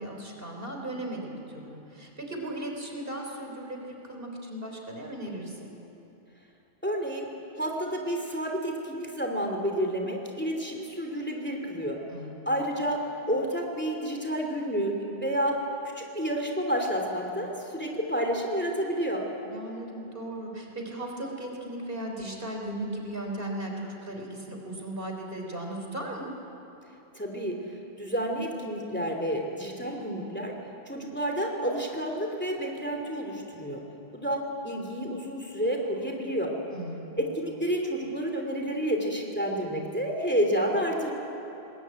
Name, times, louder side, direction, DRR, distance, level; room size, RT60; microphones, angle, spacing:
voice 1, 0.0-5.7 12.1-12.5 19.5-26.3 36.7-37.1, right 1 dB, 60° right, 1 dB, 3.8 m, -37 dB
voice 2, 6.8-7.3 7.6-12.0 12.5-13.0 13.3-15.6 15.9-19.2 27.1-27.6 28.0-30.5 30.9-33.8 34.1-36.5 37.2-41.1, equal, 10° left, 1 dB, 2.8 m, -30 dB
23.5 x 20.5 x 9.5 m, 3.0 s
omnidirectional pair, 1.1 m